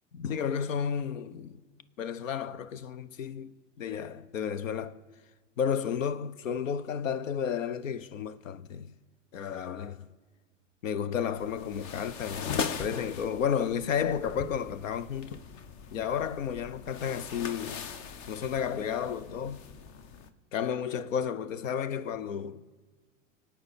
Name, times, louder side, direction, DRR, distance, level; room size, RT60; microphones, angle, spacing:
voice 1, 0.1-1.6 2.0-4.9 5.6-8.9 9.3-10.1 10.8-15.4 15.9-17.9 18.3-19.6 20.5-22.6, left 7 dB, 85° left, 0.7 m, -32 dB
sound 1, 11.4-20.3, left 6 dB, 45° left, 1.0 m, -40 dB
23.0 x 8.5 x 4.2 m
hypercardioid pair, 90°, 38 cm